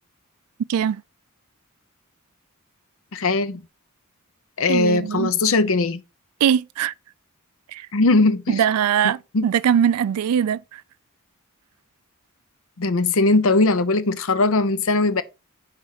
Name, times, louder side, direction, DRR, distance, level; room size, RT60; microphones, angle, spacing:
voice 1, 0.7-1.0 4.7-5.3 6.4-6.9 7.7-7.9 8.5-9.2 9.4-10.8, right 8 dB, 85° right, 0.3 m, -21 dB
voice 2, 3.1-3.6 4.6-6.0 7.9-8.6 9.0-9.5 12.8-15.2, left 3 dB, 65° left, 0.6 m, -20 dB
5.9 x 4.9 x 3.9 m
head